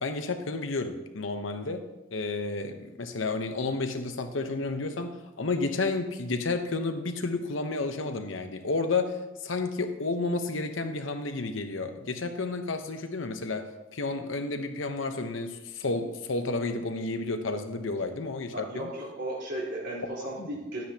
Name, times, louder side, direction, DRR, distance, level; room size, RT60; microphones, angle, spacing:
voice 1, 0.0-1.8 2.1-18.9 20.4-20.5, left 3 dB, 75° left, 7 dB, 0.9 m, -31 dB
voice 2, 18.5-20.8, right 1 dB, 65° right, -6 dB, 3.9 m, -35 dB
12.0 x 9.3 x 2.9 m, 1.0 s
head